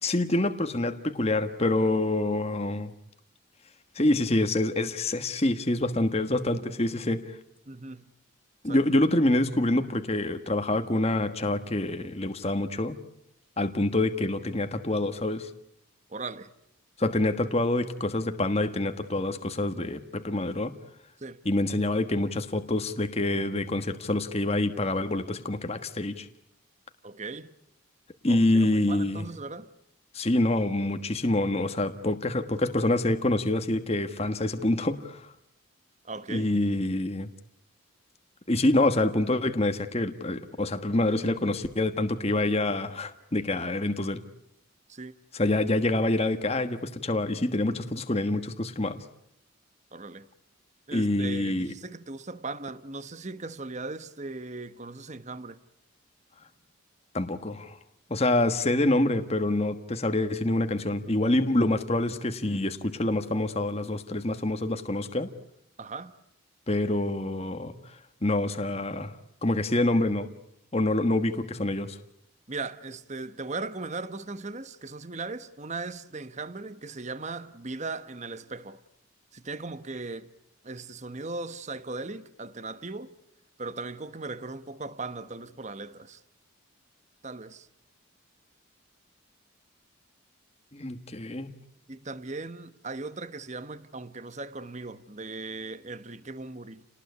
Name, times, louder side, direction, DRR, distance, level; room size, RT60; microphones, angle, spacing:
voice 1, 0.0-2.9 3.9-7.2 8.6-13.0 13.6-15.5 17.0-20.7 21.4-26.3 28.2-29.2 30.1-35.3 36.3-37.3 38.5-44.2 45.3-49.0 50.9-51.7 57.1-57.8 58.1-65.3 66.7-67.7 68.2-69.1 69.4-70.3 70.7-72.0 90.7-91.5, left 2 dB, 30° left, 1.5 m, -26 dB
voice 2, 7.7-8.0 8.7-8.8 16.1-16.5 21.2-21.4 27.0-27.5 28.3-29.7 36.0-36.5 44.9-45.1 49.9-50.3 50.9-55.6 65.8-66.1 72.5-78.8 79.3-80.3 80.6-83.1 83.6-86.2 87.2-87.7 91.9-96.8, right 3 dB, 35° right, 1.1 m, -38 dB
29.5 x 19.0 x 9.6 m
head